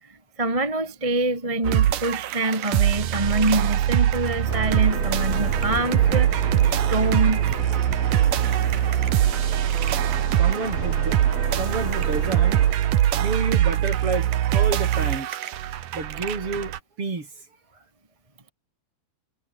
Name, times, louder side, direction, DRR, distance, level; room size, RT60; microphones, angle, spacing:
voice 1, 0.0-7.5 9.7-9.8, right 2 dB, 10° right, 2.1 m, -26 dB
sound 1, 1.6-16.8, right 12 dB, 65° right, 2.2 m, -22 dB
sound 2, 4.5-12.7, left 5 dB, 50° left, 7.0 m, -35 dB
voice 2, 10.3-11.1 11.5-12.6 13.1-15.4 15.9-16.7 17.0-17.3, right 3 dB, 30° right, 4.6 m, -30 dB
omnidirectional pair, 5.5 m